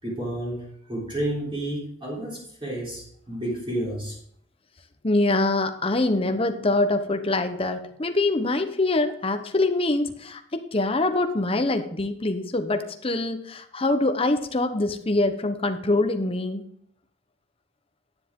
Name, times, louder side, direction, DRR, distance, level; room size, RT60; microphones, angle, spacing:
voice 1, 0.0-4.2, right 1 dB, 25° right, -5 dB, 3.7 m, -31 dB
voice 2, 5.0-16.6, left 2 dB, 30° left, 7 dB, 0.9 m, -24 dB
10.5 x 9.8 x 3.7 m, 0.66 s
head